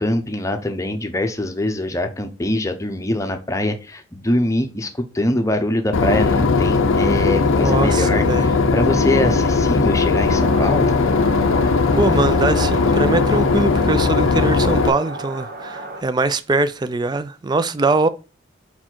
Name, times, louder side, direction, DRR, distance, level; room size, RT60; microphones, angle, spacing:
voice 1, 0.0-4.9 5.1-10.9, left 1 dB, 15° left, 0.7 m, -23 dB
Boat Water vehicle / Engine, 5.9-14.9, left 4 dB, 80° left, 0.5 m, -18 dB
voice 2, 7.4-8.5 11.6-18.1, right 3 dB, 20° right, 0.3 m, -22 dB
sound 1, 10.3-16.0, right 2 dB, 45° right, 1.0 m, -32 dB
5.3 x 4.3 x 4.5 m
head